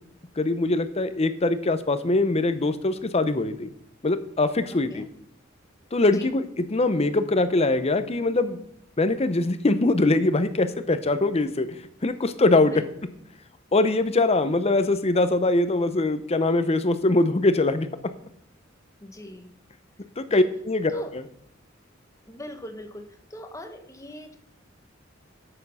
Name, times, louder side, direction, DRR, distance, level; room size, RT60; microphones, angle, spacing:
voice 1, 0.4-3.7 4.0-5.1 5.9-6.4 6.7-8.6 9.0-12.7 13.7-18.1 20.2-20.9, left 2 dB, 30° left, 11 dB, 0.7 m, -22 dB
voice 2, 4.7-5.1 6.1-6.3 12.7-12.8 19.0-19.5 20.3-20.5 20.9-21.1 22.3-24.4, left 1 dB, 15° left, 6 dB, 1.1 m, -39 dB
9.0 x 6.9 x 5.5 m, 0.74 s
head